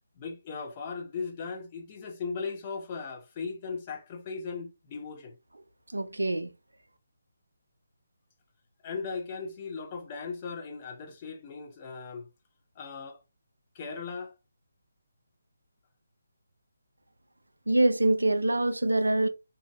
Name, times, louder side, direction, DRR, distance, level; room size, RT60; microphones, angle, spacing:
voice 1, 0.2-5.4 8.8-12.3 12.8-13.2 13.7-14.3, left 5 dB, 25° left, 0.7 m, -38 dB
voice 2, 5.9-6.5 17.7-19.3, right 2 dB, 75° right, 0.4 m, -24 dB
2.7 x 2.5 x 2.3 m
figure-of-eight pair, 150°, 0 cm